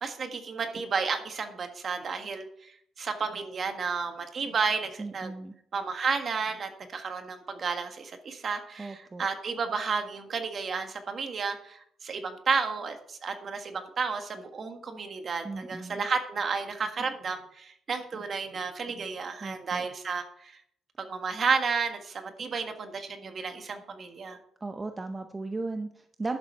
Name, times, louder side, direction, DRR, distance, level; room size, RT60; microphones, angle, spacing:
voice 1, 0.0-5.3 5.7-20.6 21.0-24.4, right 5 dB, 50° right, 6 dB, 1.6 m, -32 dB
voice 2, 5.0-5.5 8.8-9.3 15.4-16.0 19.4-19.8 24.6-26.4, right 3 dB, 25° right, 6 dB, 0.7 m, -36 dB
11.5 x 7.0 x 4.5 m, 0.67 s
cardioid pair, 90°, 0 cm